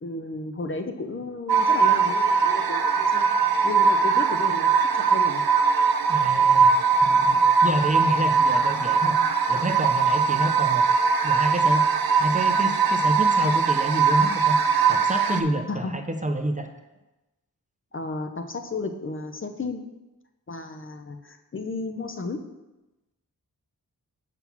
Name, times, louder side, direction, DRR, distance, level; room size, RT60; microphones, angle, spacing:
voice 1, 0.0-5.4 15.7-15.9 17.9-19.8 20.5-22.4, left 3 dB, 35° left, 6 dB, 0.6 m, -33 dB
sound 1, 1.5-15.4, right 5 dB, 70° right, 0.6 m, -21 dB
voice 2, 6.1-9.2 9.5-10.9 11.2-11.9 12.2-14.6 14.9-16.7, right 1 dB, 20° right, 6 dB, 0.6 m, -28 dB
5.7 x 3.8 x 5.9 m, 1.0 s
cardioid pair, 55°, 37 cm